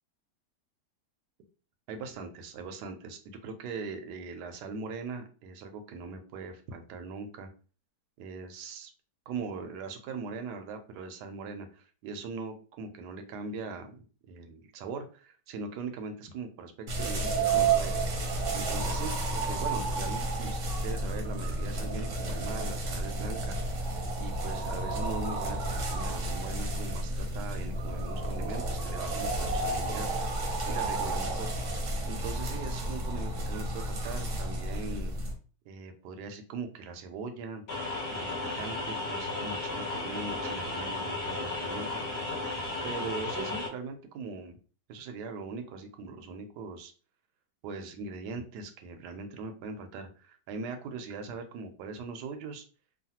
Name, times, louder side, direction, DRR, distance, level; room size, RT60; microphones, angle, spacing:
voice 1, 1.9-7.5 8.2-8.9 9.3-17.9 18.5-23.9 24.2-30.1 30.7-31.6 32.1-35.1 35.7-37.6 38.1-42.0 42.8-44.6 44.9-46.9 47.6-52.6, right 4 dB, 75° right, 5 dB, 1.1 m, -40 dB
sound 1, 16.9-35.3, right 2 dB, 55° right, 0.9 m, -31 dB
sound 2, 37.7-43.7, left 2 dB, 70° left, 1.4 m, -34 dB
3.1 x 2.2 x 2.8 m, 0.38 s
omnidirectional pair, 1.8 m